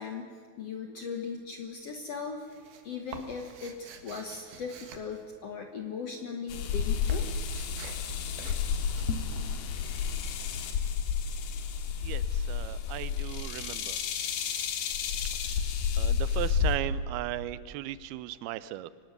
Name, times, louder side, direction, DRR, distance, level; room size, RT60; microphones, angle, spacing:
voice 1, 0.0-2.4 2.8-7.3, left 5 dB, 65° left, 4 dB, 1.6 m, -38 dB
sound 1, 1.2-1.7 2.0-6.0 6.3-11.9, right 6 dB, 65° right, 2.9 m, -50 dB
sound 2, 6.5-16.8, left 7 dB, 85° left, 3.4 m, -31 dB
voice 2, 12.0-14.0 16.0-18.9, right 14 dB, 90° right, 16 dB, 2.6 m, -37 dB
25.0 x 18.0 x 6.6 m, 2.1 s
omnidirectional pair, 4.4 m